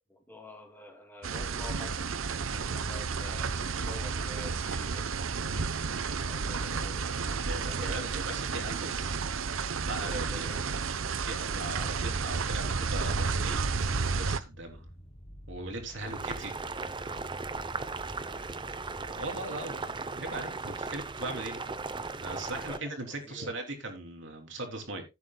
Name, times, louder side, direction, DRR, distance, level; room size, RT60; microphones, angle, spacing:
voice 1, 0.1-5.6 6.2-8.1 10.0-10.7 15.9-16.2 18.2-18.6 22.5-23.7, left 1 dB, 10° left, 2.5 m, -48 dB
sound 1, 1.2-14.4, right 5 dB, 80° right, 0.8 m, -32 dB
voice 2, 7.4-9.2 9.8-10.5 11.2-13.9 14.2-14.9 15.5-16.5 19.1-21.6 22.2-25.0, right 2 dB, 60° right, 3.3 m, -39 dB
sound 2, 13.7-19.3, equal, 30° left, 1.2 m, -48 dB
Boiling, 16.0-22.8, right 4 dB, 25° right, 0.6 m, -37 dB
16.5 x 8.2 x 2.2 m
head